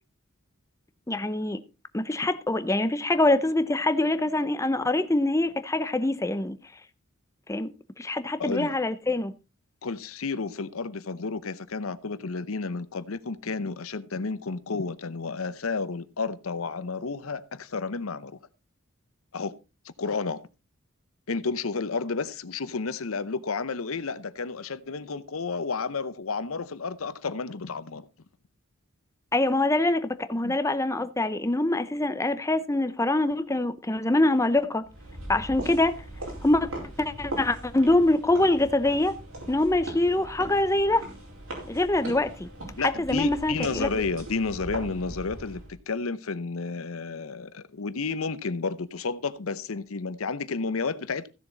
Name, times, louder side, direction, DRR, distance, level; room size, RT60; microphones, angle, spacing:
voice 1, 1.1-1.6 1.9-6.6 7.5-7.7 8.0-9.3 29.3-34.8 35.3-35.9 36.4-36.7 37.0-39.2 39.5-41.1 41.7-42.5 42.8-43.9, left 2 dB, 15° left, 0.6 m, -24 dB
voice 2, 8.4-8.8 9.8-18.4 19.3-19.5 19.8-20.4 21.3-28.1 30.4-30.5 42.8-51.3, left 4 dB, 80° left, 0.8 m, -31 dB
sound 1, 34.8-45.8, right 1 dB, 85° right, 4.7 m, -40 dB
15.0 x 7.1 x 4.0 m
head